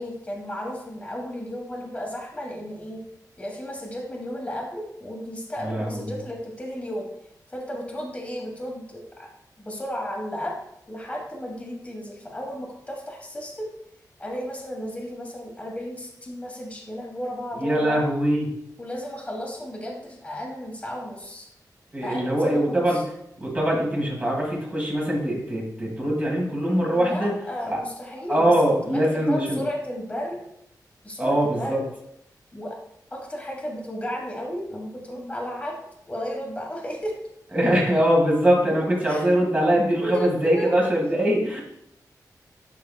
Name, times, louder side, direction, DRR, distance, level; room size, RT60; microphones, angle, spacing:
voice 1, 0.0-3.0 3.4-7.1 7.5-9.3 9.6-10.6 10.9-13.7 14.2-18.0 18.8-21.5 22.0-23.0 26.9-28.5 28.8-30.4 31.0-31.8 32.5-32.8 33.1-35.8 36.1-37.1 39.1-39.3 40.0-40.8, equal, 20° left, -2 dB, 1.4 m, -33 dB
voice 2, 5.6-6.1 17.6-18.5 21.9-23.0 23.4-27.3 27.7-27.8 28.1-29.6 31.2-31.8 37.5-41.6, right 1 dB, 25° right, -2 dB, 1.9 m, -22 dB
11.0 x 4.8 x 2.3 m, 0.76 s
wide cardioid pair, 135°, 7 cm